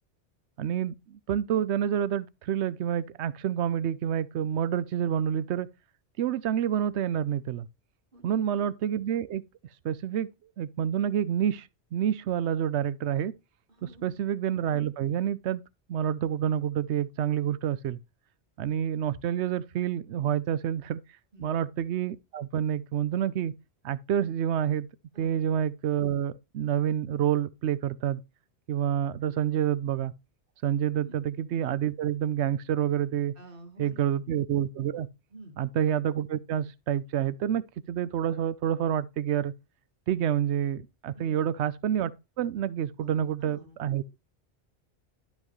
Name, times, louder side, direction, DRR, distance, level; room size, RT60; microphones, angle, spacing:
voice 1, 0.6-5.7 6.2-7.7 8.2-9.4 9.8-10.3 10.6-13.3 14.0-15.6 15.9-18.0 18.6-21.0 21.4-23.5 23.8-24.9 25.2-28.2 28.7-30.1 30.6-33.3 33.8-35.1 35.6-37.6 37.9-39.5 40.1-42.1 42.4-44.0, right 10 dB, 80° right, 0.9 m, -28 dB
voice 2, 8.1-8.5 13.7-14.2 21.3-21.6 25.1-25.3 31.0-31.2 33.4-34.1 35.3-35.6 41.1-41.4 43.0-43.8, right 2 dB, 50° right, 1.9 m, -49 dB
12.0 x 5.4 x 3.1 m
omnidirectional pair, 1.1 m